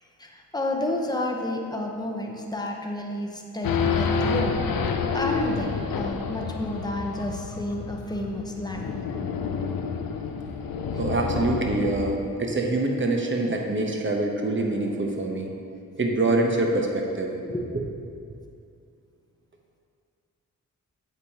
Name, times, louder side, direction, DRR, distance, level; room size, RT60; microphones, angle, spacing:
voice 1, 0.2-4.6 4.8-9.0 11.3-11.4 17.4-17.6, left 1 dB, 10° left, 1 dB, 0.8 m, -31 dB
Race car auto racing / Idling / Accelerating revving vroom, 3.6-12.2, left 5 dB, 75° left, 0.5 m, -29 dB
voice 2, 10.9-15.5 16.0-17.3 17.7-17.8, right 2 dB, 35° right, 1 dB, 0.9 m, -25 dB
7.8 x 4.8 x 2.9 m, 2.4 s
cardioid pair, 45°, 35 cm